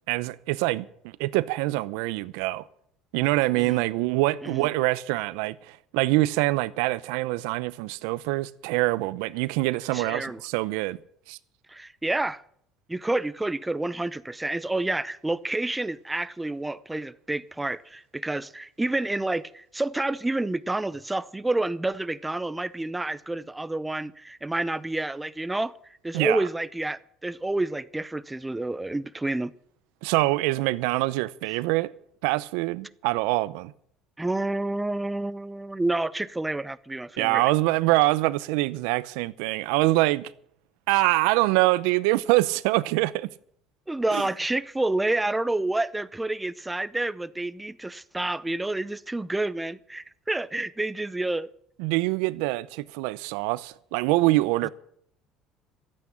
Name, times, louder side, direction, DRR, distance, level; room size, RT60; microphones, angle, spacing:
voice 1, 0.1-2.6 3.1-11.0 11.3-11.4 26.1-26.4 30.0-31.9 32.2-33.7 37.2-40.3 40.9-43.3 44.1-44.2 51.8-54.7, right 19 dB, 85° right, 0.7 m, -25 dB
voice 2, 9.9-10.4 11.7-12.4 12.9-25.7 26.0-29.5 34.2-37.5 43.9-51.5 54.6-54.7, right 2 dB, 10° right, 0.6 m, -29 dB
13.5 x 8.6 x 9.9 m
cardioid pair, 120°, 0 cm